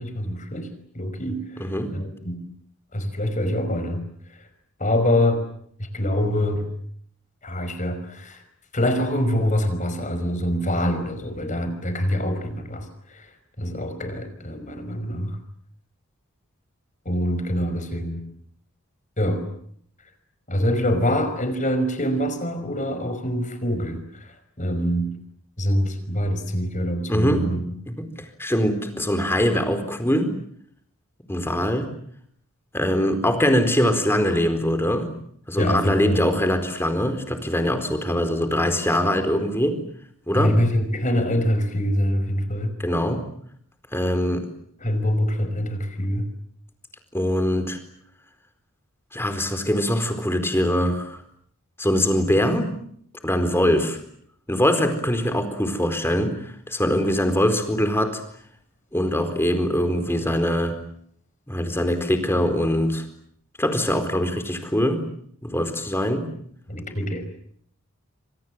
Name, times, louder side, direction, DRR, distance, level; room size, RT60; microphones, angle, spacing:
voice 1, 0.0-2.5 2.9-4.0 4.3-4.5 4.8-5.5 5.8-6.7 7.4-8.4 8.7-15.4 17.1-18.2 19.2-19.5 20.5-25.1 25.6-27.6 35.6-36.3 40.3-42.7 44.8-46.3 66.7-67.2, equal, 35° left, 9 dB, 5.4 m, -25 dB
voice 2, 1.6-1.9 27.1-27.5 27.9-30.4 31.3-31.9 32.7-35.1 35.5-39.8 40.3-40.6 42.8-43.3 43.9-44.5 47.1-47.8 49.1-51.2 51.8-52.7 53.2-54.0 54.5-58.2 58.9-60.8 61.5-63.1 63.6-65.0 65.4-66.3, equal, 10° left, 8 dB, 4.3 m, -23 dB
28.5 x 27.0 x 7.6 m, 0.67 s
head